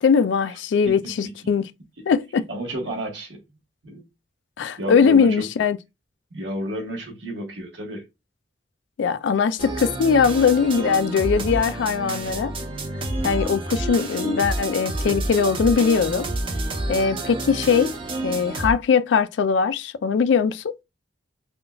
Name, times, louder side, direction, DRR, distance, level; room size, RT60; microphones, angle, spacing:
voice 1, 0.0-1.6 2.1-2.4 4.6-5.8 9.0-12.5 13.2-16.3 16.9-17.9 18.2-20.7, left 6 dB, 75° left, 0.3 m, -20 dB
voice 2, 0.8-1.5 2.0-2.1 2.5-3.4 3.8-4.0 4.8-5.5 6.3-8.0, right 1 dB, 80° right, 1.2 m, -32 dB
sound 1, 9.6-18.7, right 2 dB, 30° right, 0.5 m, -29 dB
3.5 x 2.6 x 2.3 m
head